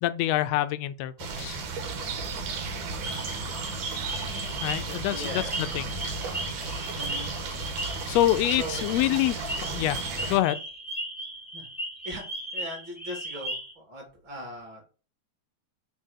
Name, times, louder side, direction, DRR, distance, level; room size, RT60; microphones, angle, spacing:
voice 1, 0.0-1.6 4.6-5.9 8.1-10.0 10.3-10.6, left 14 dB, 80° left, 1.5 m, -26 dB
sound 1, 1.2-10.4, right 4 dB, 85° right, 3.0 m, -34 dB
sound 2, 3.0-13.7, right 1 dB, 5° left, 1.3 m, -37 dB
voice 2, 5.1-5.6 7.0-7.3 8.6-8.8 11.5-11.7 12.0-12.2 12.5-14.8, right 1 dB, 40° right, 3.5 m, -39 dB
7.7 x 3.6 x 6.4 m
omnidirectional pair, 3.5 m